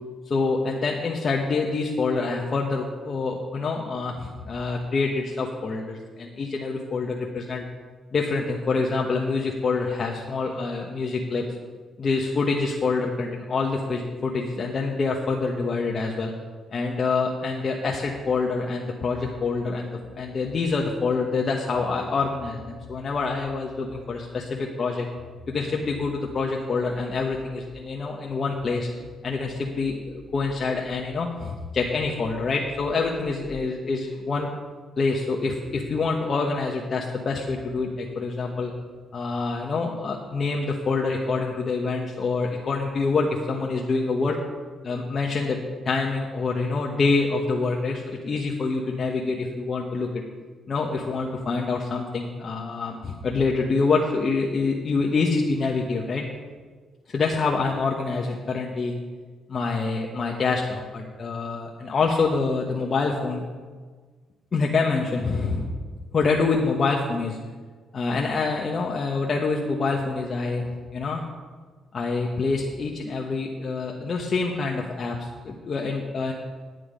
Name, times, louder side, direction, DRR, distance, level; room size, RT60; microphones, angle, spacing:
voice 1, 0.3-7.6 8.1-11.4 12.0-16.3 16.7-25.1 25.5-28.9 29.2-34.5 35.0-38.7 39.1-44.4 44.8-50.2 50.7-56.3 57.1-58.9 59.5-63.4 64.5-65.6 66.1-67.4 67.9-71.2 71.9-76.3, left 4 dB, 45° left, -1 dB, 1.3 m, -26 dB
sound 1, 20.0-21.9 22.2-28.7 29.0-31.7 32.0-33.7, left 5 dB, 75° left, 1.0 m, -48 dB
9.9 x 9.5 x 5.2 m, 1.5 s
cardioid pair, 90°, 0 cm